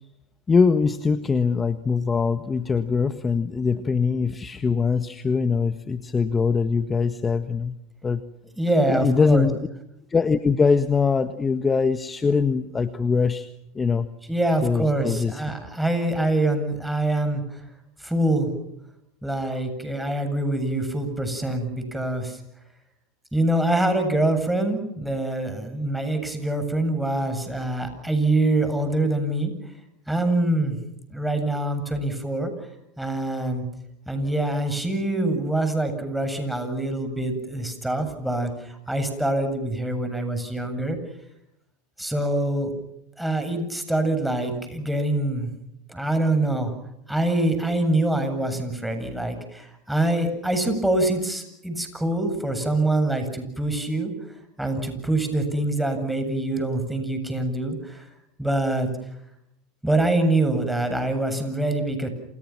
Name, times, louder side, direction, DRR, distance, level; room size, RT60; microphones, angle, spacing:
voice 1, 0.5-7.7 8.0-8.2 8.9-9.5 10.1-13.5 13.7-14.1 14.6-15.4, left 5 dB, 20° left, 10 dB, 1.6 m, -22 dB
voice 2, 8.6-9.5 14.3-17.6 18.0-18.5 19.2-22.4 23.3-29.5 30.1-30.8 31.1-32.7 33.0-33.7 34.1-41.0 42.0-42.7 43.2-45.5 45.9-46.7 47.1-54.1 54.6-58.1 58.4-59.0 59.8-62.1, right 1 dB, 5° right, 7 dB, 7.9 m, -25 dB
29.5 x 28.5 x 6.0 m, 0.79 s
hypercardioid pair, 95°, 0 cm